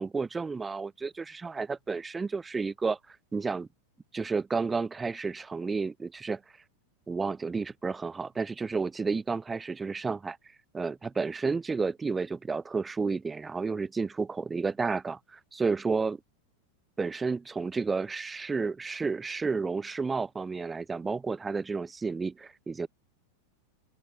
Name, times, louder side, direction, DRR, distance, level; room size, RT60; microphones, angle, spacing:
voice 1, 0.0-3.7 4.1-6.4 7.1-10.4 10.7-16.2 17.0-22.9, right 4 dB, 15° right, 1.0 m, -31 dB
open air
figure-of-eight pair, 90°, 0 cm